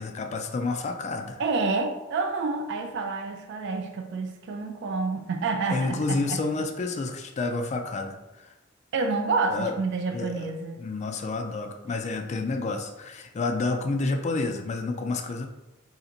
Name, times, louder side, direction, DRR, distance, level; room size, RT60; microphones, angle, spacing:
voice 1, 0.0-1.4 5.7-8.5 9.5-9.7 10.1-10.5 10.8-15.5, left 3 dB, 35° left, 4 dB, 0.3 m, -29 dB
voice 2, 1.4-6.4 8.9-10.8, right 4 dB, 60° right, 5 dB, 0.4 m, -28 dB
2.8 x 2.5 x 3.8 m, 1.0 s
head